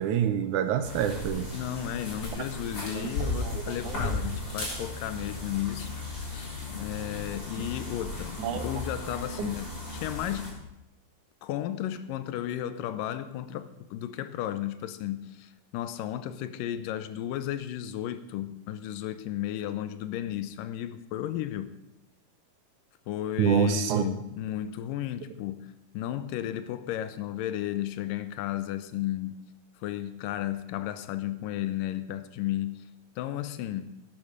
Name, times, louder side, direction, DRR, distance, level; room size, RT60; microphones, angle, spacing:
voice 1, 0.0-1.5 2.9-4.2 7.6-7.7 8.4-8.7 9.4-9.5 23.4-24.0, right 8 dB, 80° right, 9 dB, 1.9 m, -27 dB
sound 1, 0.8-10.5, left 2 dB, 30° left, 4.4 m, -36 dB
voice 2, 1.5-10.6 11.4-21.8 23.1-29.4 29.8-32.8 33.2-34.0, left 12 dB, 85° left, 12 dB, 2.2 m, -34 dB
11.5 x 8.8 x 6.5 m, 0.88 s
omnidirectional pair, 4.0 m